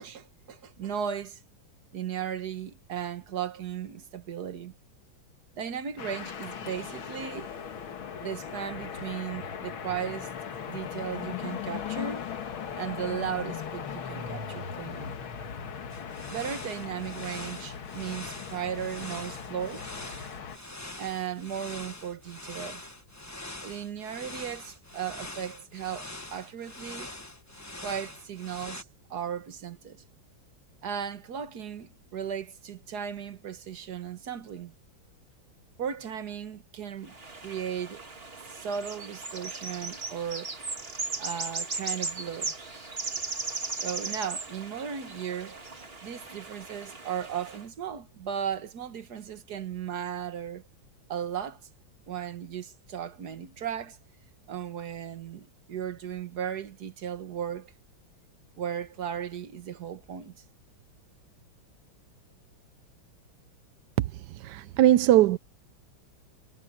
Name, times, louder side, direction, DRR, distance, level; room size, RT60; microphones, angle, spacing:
voice 1, 0.0-1.4 1.9-4.7 5.6-7.5 8.2-10.3 10.7-12.3 12.7-15.2 16.3-20.4 21.0-22.8 23.6-27.1 27.8-30.0 30.8-34.7 35.8-37.2 37.4-38.0 38.5-40.5 41.2-42.6 43.8-45.6 46.0-50.6 51.1-51.6 52.1-54.0 54.5-57.7 58.6-60.4, right 8 dB, 55° right, 1.8 m, -36 dB
sound 1, 6.0-20.6, left 7 dB, 85° left, 2.4 m, -38 dB
sound 2, 15.9-28.8, left 1 dB, 10° left, 1.0 m, -43 dB
sound 3, 37.1-47.6, right 3 dB, 30° right, 2.2 m, -37 dB
voice 2, 64.4-65.4, right 13 dB, 70° right, 1.0 m, -20 dB
omnidirectional pair, 2.2 m